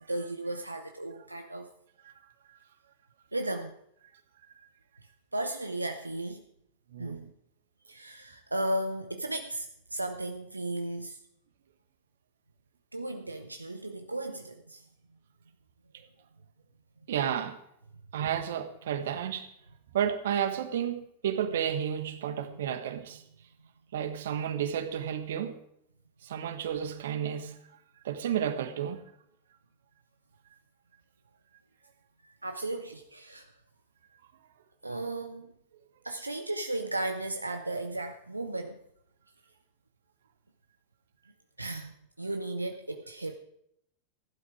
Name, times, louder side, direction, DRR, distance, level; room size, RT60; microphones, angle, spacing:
voice 1, 0.1-1.7 3.3-3.8 5.3-6.4 7.0-7.3 7.9-11.2 12.9-14.9 22.5-22.6 32.2-33.5 34.8-35.5 36.0-38.8 41.6-43.3, right 1 dB, 85° right, 6 dB, 0.8 m, -35 dB
voice 2, 6.9-7.3 17.1-17.6 18.1-19.5 19.9-23.2 23.9-25.6 26.2-27.6 28.0-29.0, right 9 dB, 60° right, 10 dB, 1.4 m, -31 dB
16.0 x 11.5 x 4.9 m, 0.75 s
figure-of-eight pair, 90°, 0 cm